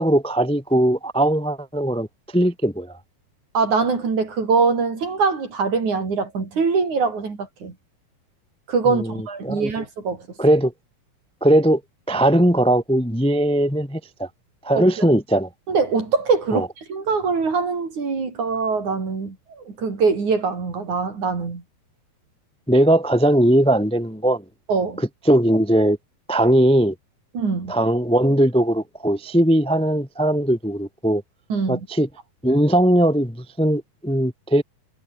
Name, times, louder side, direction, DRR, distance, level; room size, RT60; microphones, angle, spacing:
voice 1, 0.0-2.1 2.3-3.0 8.9-9.7 10.4-10.7 11.4-11.8 12.1-14.3 14.6-15.5 16.5-16.7 22.7-24.4 25.0-26.0 26.3-26.9 27.7-31.2 31.7-32.1 32.4-34.6, right 1 dB, 10° left, 0.3 m, -19 dB
voice 2, 3.5-7.7 8.7-10.3 14.8-15.1 15.7-21.6 24.7-25.0 27.3-27.7 31.5-31.8, right 4 dB, 55° right, 6.4 m, -23 dB
omnidirectional pair, 4.2 m